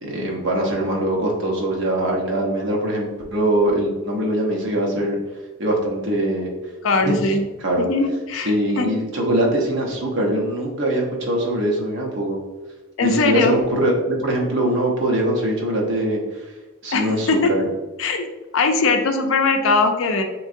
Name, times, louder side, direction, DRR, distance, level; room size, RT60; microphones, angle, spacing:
voice 1, 0.0-5.2 5.6-6.5 7.1-7.2 7.6-7.9 8.4-12.4 13.0-16.2 16.8-17.7, right 1 dB, 60° right, -1 dB, 0.8 m, -22 dB
voice 2, 6.8-7.4 7.8-8.9 13.0-13.6 16.9-17.5 18.0-18.3 18.5-20.2, left 3 dB, 65° left, 5 dB, 0.4 m, -20 dB
3.7 x 3.0 x 2.5 m, 1.2 s
head